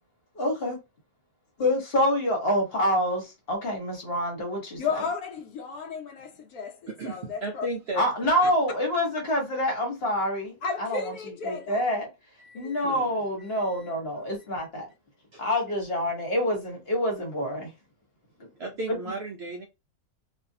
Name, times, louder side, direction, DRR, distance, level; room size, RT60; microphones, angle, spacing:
voice 1, 0.3-0.8 1.6-5.0 8.0-11.1 11.4-12.1 12.5-14.9 15.4-17.7, equal, 45° left, 1.2 m, -27 dB
voice 2, 4.8-6.8 7.0-7.7 8.4-8.5 10.6-11.8 12.6-13.0, left 5 dB, 80° left, 1.1 m, -34 dB
voice 3, 6.9-8.5 11.5-11.7 12.4-13.1 13.4-14.0 15.3-15.5 18.6-19.6, right 2 dB, 65° right, 0.6 m, -36 dB
2.6 x 2.5 x 2.7 m
omnidirectional pair, 1.6 m